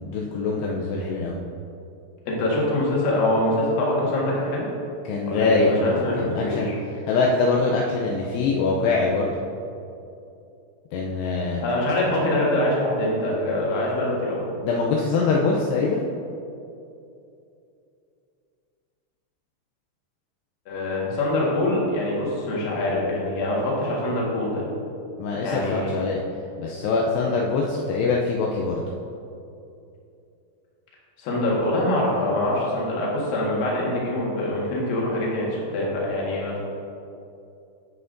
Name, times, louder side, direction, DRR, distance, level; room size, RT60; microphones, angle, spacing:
voice 1, 0.0-1.4 5.1-6.7 7.1-9.3 10.9-11.6 14.6-16.0 25.2-26.2 26.6-28.8, left 4 dB, 80° left, -2 dB, 2.4 m, -23 dB
voice 2, 2.3-4.7 5.3-6.8 11.6-14.4 20.7-24.6 25.4-26.0 31.2-36.6, left 1 dB, 60° left, -4 dB, 2.9 m, -24 dB
11.5 x 8.0 x 2.6 m, 2.6 s
omnidirectional pair, 5.4 m